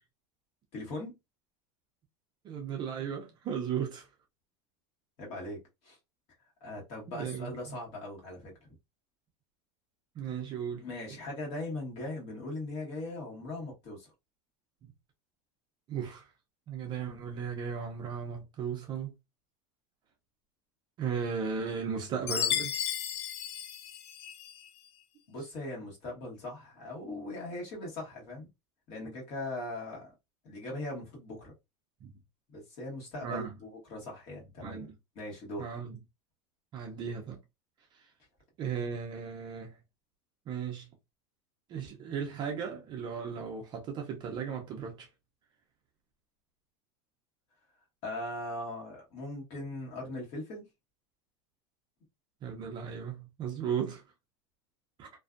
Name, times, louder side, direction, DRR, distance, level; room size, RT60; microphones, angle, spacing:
voice 1, 0.7-1.1 5.2-6.0 6.6-8.5 10.8-14.1 25.3-28.5 28.9-30.1 30.4-31.5 32.5-34.9 35.1-35.7 48.0-50.7, left 1 dB, 45° left, 1.3 m, -40 dB
voice 2, 2.4-4.1 7.1-7.5 10.2-10.9 15.9-16.3 16.7-19.1 21.0-22.7 32.0-32.1 33.2-33.5 34.6-34.9 35.6-36.0 36.7-37.4 37.9-38.0 38.6-39.7 40.5-40.9 41.7-45.1 52.4-54.0 55.0-55.1, right 7 dB, 30° right, 0.5 m, -36 dB
Chime, 22.3-24.6, left 10 dB, 65° left, 0.4 m, -33 dB
2.5 x 2.3 x 2.4 m
supercardioid pair, 160°, 15 cm